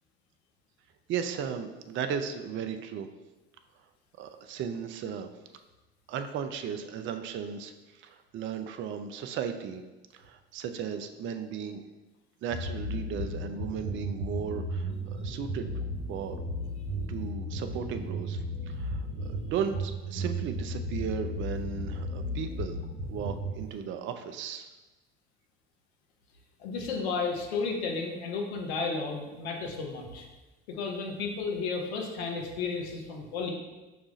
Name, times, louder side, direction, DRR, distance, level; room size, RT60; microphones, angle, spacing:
voice 1, 1.1-3.1 4.2-5.3 6.1-9.8 10.1-11.8 12.4-15.6 16.1-16.4 17.1-22.8 23.1-24.7, right 7 dB, 40° right, 7 dB, 0.4 m, -36 dB
sound 1, 12.5-23.6, equal, 65° right, 1.0 m, -35 dB
voice 2, 26.6-30.3 30.7-33.5, left 4 dB, 80° left, 1 dB, 0.8 m, -33 dB
5.3 x 2.4 x 3.9 m, 1.1 s
hypercardioid pair, 70°, 31 cm